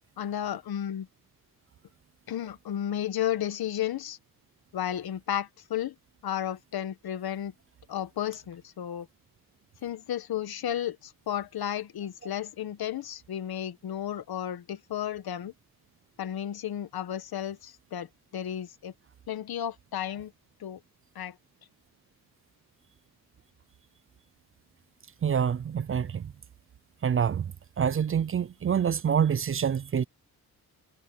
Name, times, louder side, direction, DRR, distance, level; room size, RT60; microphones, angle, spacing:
voice 1, 0.2-1.1 2.3-4.2 4.7-5.9 6.2-7.5 7.9-9.1 9.8-15.5 16.2-18.9 19.3-20.3 20.6-20.8 21.1-21.4, left 10 dB, 75° left, 1.6 m, -33 dB
voice 2, 25.2-26.3 27.0-27.5 27.8-30.0, right 7 dB, 35° right, 0.5 m, -26 dB
cardioid pair, 80°, 37 cm